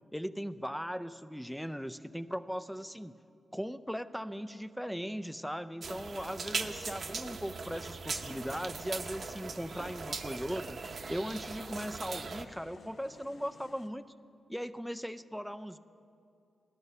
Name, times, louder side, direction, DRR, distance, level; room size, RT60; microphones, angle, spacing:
voice 1, 0.1-3.1 3.5-10.8 11.1-14.0 14.5-15.8, equal, ahead, 12 dB, 0.4 m, -38 dB
sound 1, 5.8-12.5, right 4 dB, 55° right, 0.7 m, -40 dB
sound 2, 8.1-13.9, left 4 dB, 65° left, 0.7 m, -57 dB
16.0 x 12.5 x 5.5 m, 2.5 s
cardioid pair, 90°, 0 cm